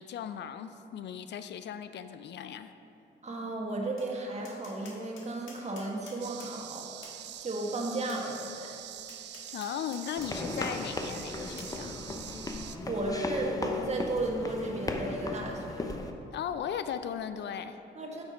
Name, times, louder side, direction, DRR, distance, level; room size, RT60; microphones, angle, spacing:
voice 1, 0.0-2.7 9.5-12.0 16.3-17.8, left 8 dB, 60° left, 11 dB, 0.4 m, -37 dB
voice 2, 3.2-7.1 7.4-8.8 12.9-15.9 17.9-18.2, right 2 dB, 35° right, 0 dB, 1.5 m, -34 dB
Tap, 4.0-4.1 4.4-6.5 7.0-7.2 8.1-8.2 9.1-10.3 10.8-10.9 11.6-11.7, left 4 dB, 85° left, 1.5 m, -50 dB
sound 1, 6.2-12.8, right 11 dB, 60° right, 0.4 m, -45 dB
sound 2, 10.2-16.1, left 2 dB, 20° left, 0.7 m, -36 dB
8.1 x 6.2 x 5.2 m, 2.8 s
cardioid pair, 90°, 20 cm